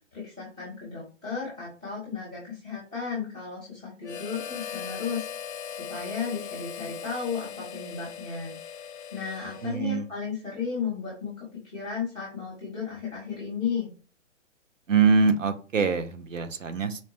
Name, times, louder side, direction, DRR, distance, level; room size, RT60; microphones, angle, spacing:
voice 1, 0.1-5.3 5.8-13.9, left 6 dB, 5° right, -12 dB, 0.3 m, -34 dB
Harmonica, 4.0-10.1, left 8 dB, 60° left, 0.5 m, -39 dB
voice 2, 9.6-10.1 14.9-17.0, right 5 dB, 85° right, 8 dB, 0.7 m, -24 dB
4.1 x 2.0 x 2.9 m, 0.37 s
figure-of-eight pair, 130°, 38 cm